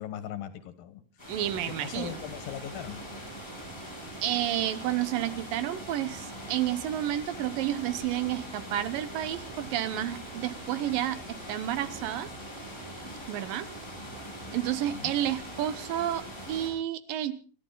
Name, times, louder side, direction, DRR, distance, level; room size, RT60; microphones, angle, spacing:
voice 1, 0.0-1.3 1.6-3.0 14.8-15.1, left 11 dB, 85° left, 11 dB, 3.1 m, -40 dB
sound 1, 1.2-16.7, equal, 5° left, 7.9 m, -42 dB
voice 2, 1.3-2.1 4.2-12.3 13.3-13.7 14.5-17.3, right 12 dB, 80° right, 14 dB, 2.7 m, -30 dB
28.5 x 11.0 x 3.9 m, 0.38 s
omnidirectional pair, 3.9 m